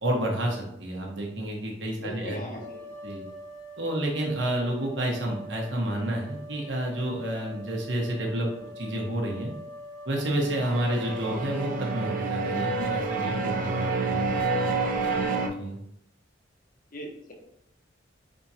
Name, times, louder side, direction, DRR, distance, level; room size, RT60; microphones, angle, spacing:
voice 1, 0.0-2.4 3.0-3.2 3.8-9.5 10.0-14.3 15.4-15.8, right 1 dB, 70° right, 0 dB, 1.1 m, -30 dB
voice 2, 2.0-2.9 16.9-17.3, equal, 50° left, 1 dB, 1.0 m, -40 dB
sound 1, 2.5-12.3, left 1 dB, 20° left, 1.1 m, -44 dB
sound 2, 10.2-15.5, right 3 dB, 45° right, 0.5 m, -28 dB
4.8 x 3.6 x 2.8 m, 0.76 s
head